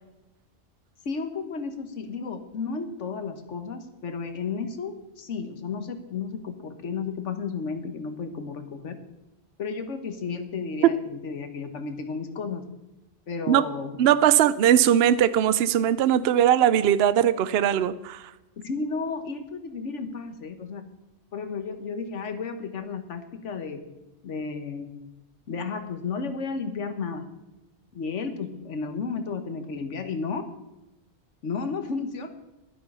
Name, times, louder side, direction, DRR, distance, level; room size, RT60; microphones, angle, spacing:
voice 1, 1.0-9.0 9.6-12.6 13.3-14.0 18.6-20.9 21.3-23.8 24.2-25.0 25.5-27.3 27.9-30.4 31.4-32.3, left 5 dB, 85° left, 9 dB, 1.5 m, -33 dB
voice 2, 14.0-18.2, right 10 dB, 65° right, 16 dB, 0.8 m, -20 dB
11.0 x 10.5 x 5.5 m, 0.96 s
omnidirectional pair, 1.2 m